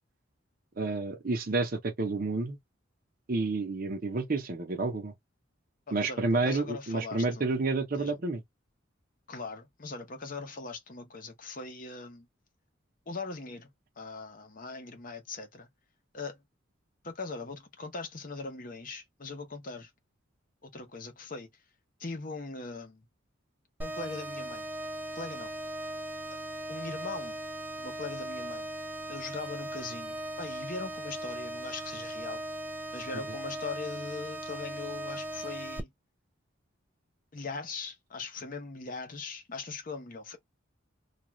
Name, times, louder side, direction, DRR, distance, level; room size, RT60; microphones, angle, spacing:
voice 1, 0.8-2.6 3.3-5.1 5.9-8.4, right 3 dB, 45° right, 0.7 m, -30 dB
voice 2, 5.9-7.4 8.0-8.1 9.3-12.3 13.1-13.7 14.0-15.7 16.1-16.4 17.0-19.9 20.6-21.5 22.0-23.1 23.8-24.7 25.1-25.5 26.3-26.4 26.7-27.4 27.8-28.7 29.1-32.4 32.9-35.9 37.3-40.4, left 4 dB, 45° left, 0.8 m, -40 dB
sound 1, 23.8-35.8, right 1 dB, 10° right, 0.3 m, -38 dB
2.4 x 2.3 x 3.0 m
head